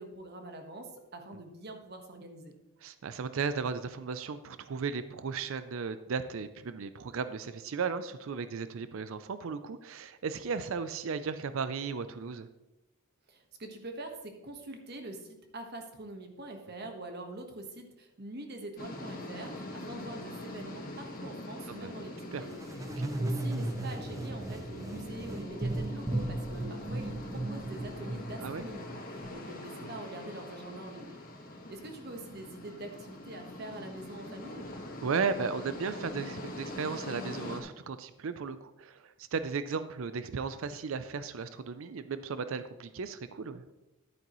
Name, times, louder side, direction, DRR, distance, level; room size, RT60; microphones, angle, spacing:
voice 1, 0.0-2.5 13.3-22.6 22.9-31.2 31.7-34.7, right 1 dB, 50° right, 4 dB, 1.3 m, -44 dB
voice 2, 2.8-12.5 21.7-21.9 22.3-22.4 23.0-23.1 28.4-28.6 29.8-29.9 35.0-43.6, right 5 dB, 70° right, 12 dB, 0.4 m, -35 dB
sound 1, 18.8-37.6, left 1 dB, 45° left, 1.5 m, -43 dB
sound 2, 22.5-29.3, right 1 dB, 15° right, 0.5 m, -36 dB
11.0 x 9.2 x 3.1 m, 0.97 s
head